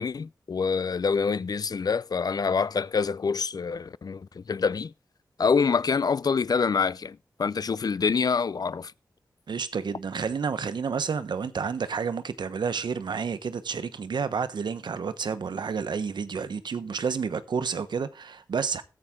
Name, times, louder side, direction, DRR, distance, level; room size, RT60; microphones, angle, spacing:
voice 1, 0.0-4.9 5.4-8.9, left 5 dB, 60° left, 0.5 m, -26 dB
voice 2, 9.5-18.8, right 6 dB, 85° right, 1.1 m, -30 dB
14.0 x 8.8 x 3.7 m
cardioid pair, 60°, 7 cm